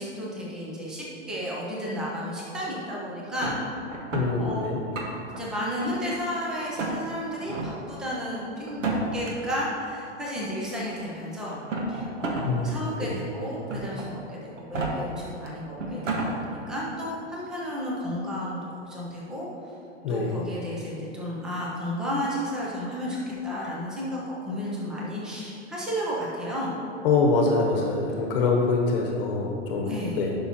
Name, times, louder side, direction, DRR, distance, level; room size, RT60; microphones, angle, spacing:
voice 1, 0.0-3.6 4.4-8.8 9.1-11.6 11.9-18.6 18.9-19.5 20.1-23.2 23.4-24.2 24.5-26.7 28.1-28.2 29.9-30.3, equal, ahead, -5 dB, 0.3 m, -33 dB
sound 1, 3.4-4.3 4.8-5.4 5.8-6.4 6.8-6.9 7.4-7.7 8.7-9.3 10.4-10.5 11.5-12.5 12.9-13.0 13.7-14.1 14.6-14.9 15.5-15.6 15.8-16.3, right 3 dB, 85° right, 1.5 m, -30 dB
voice 2, 4.1-4.8 12.4-13.1 20.0-20.4 27.0-30.3, left 3 dB, 50° left, 0 dB, 1.0 m, -25 dB
11.0 x 5.6 x 2.9 m, 2.8 s
hypercardioid pair, 145°, 37 cm